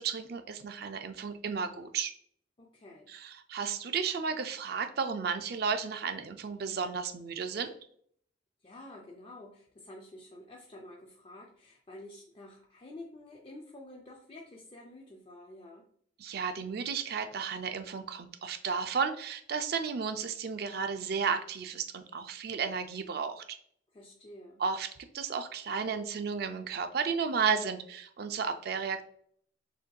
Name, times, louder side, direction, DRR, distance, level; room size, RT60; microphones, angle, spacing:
voice 1, 0.0-2.1 3.1-7.7 16.2-23.4 24.6-24.9 25.1-29.0, right 6 dB, 50° right, 8 dB, 0.4 m, -33 dB
voice 2, 2.6-3.1 8.6-15.9 23.9-24.6, left 1 dB, 30° left, -1 dB, 0.4 m, -49 dB
6.3 x 2.6 x 2.2 m, 0.62 s
head